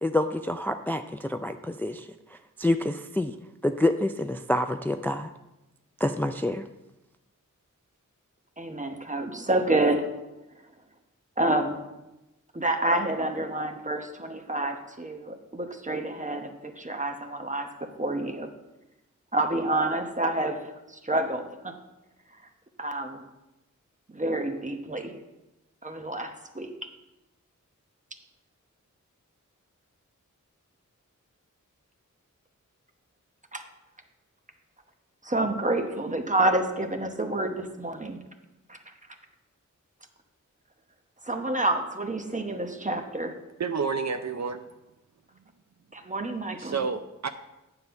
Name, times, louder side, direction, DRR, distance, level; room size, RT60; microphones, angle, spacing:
voice 1, 0.0-3.3 3.6-5.3 6.0-6.6, left 1 dB, 5° left, 8 dB, 0.3 m, -27 dB
voice 2, 8.6-10.1 11.4-11.8 12.5-17.7 18.0-18.5 19.3-21.7 22.8-23.2 24.1-25.1 25.8-26.7 33.5-33.6 35.2-38.2 38.7-38.8 41.2-43.4 45.9-46.8, right 2 dB, 25° right, 5 dB, 0.9 m, -28 dB
voice 3, 43.6-44.6 46.6-47.3, right 5 dB, 60° right, 8 dB, 0.5 m, -29 dB
9.4 x 3.9 x 6.9 m, 0.97 s
wide cardioid pair, 60°, 32 cm